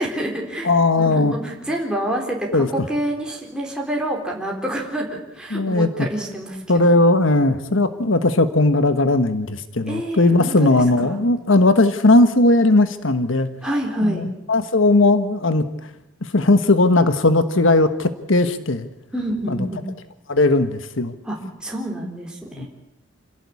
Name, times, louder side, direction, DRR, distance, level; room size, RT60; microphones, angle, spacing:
voice 1, 0.0-0.7 1.0-6.6 9.9-11.2 13.6-14.3 19.1-19.8 21.2-22.7, right 1 dB, 5° right, -2 dB, 3.8 m, -27 dB
voice 2, 0.6-1.3 2.5-2.7 5.5-6.1 6.7-13.5 14.0-15.7 16.2-18.9 19.5-19.6 20.3-21.1 22.5-22.7, left 2 dB, 80° left, 11 dB, 1.3 m, -17 dB
27.0 x 16.5 x 8.4 m, 0.88 s
head